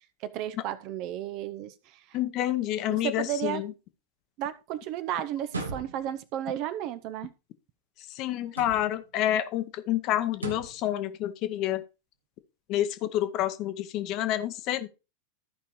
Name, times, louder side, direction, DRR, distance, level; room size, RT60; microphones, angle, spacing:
voice 1, 0.2-1.7 2.9-3.6 4.4-7.3, right 11 dB, 40° right, 0.7 m, -33 dB
voice 2, 2.1-3.7 8.1-11.8 12.7-14.9, left 12 dB, 40° left, 0.8 m, -28 dB
sound 1, 5.4-6.3 8.5-9.1 10.3-10.9, right 3 dB, 75° right, 1.3 m, -38 dB
14.5 x 5.2 x 3.1 m
figure-of-eight pair, 90°, 0 cm